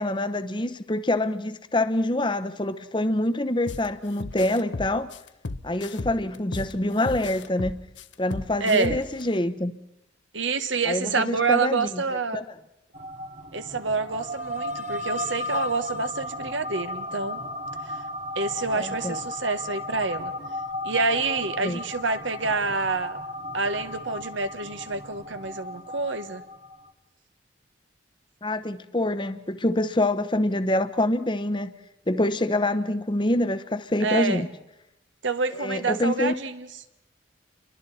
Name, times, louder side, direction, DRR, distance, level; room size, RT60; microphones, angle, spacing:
voice 1, 0.0-5.1 5.6-7.8 8.2-9.7 10.9-12.0 12.3-12.6 18.7-19.2 21.6-21.8 28.4-31.7 32.1-34.5 35.6-36.3, left 1 dB, 25° left, 0.9 m, -26 dB
sound 1, 3.7-3.9 4.2-6.7 7.1-9.2, left 3 dB, 70° left, 0.9 m, -34 dB
voice 2, 8.6-9.0 10.3-12.4 13.5-17.4 17.9-18.0 18.3-20.3 20.8-23.2 23.5-26.4 34.0-34.4 35.2-36.7, right 4 dB, 80° right, 1.5 m, -27 dB
sound 2, 12.9-26.9, left 1 dB, 40° right, 1.7 m, -35 dB
29.5 x 23.5 x 4.3 m
head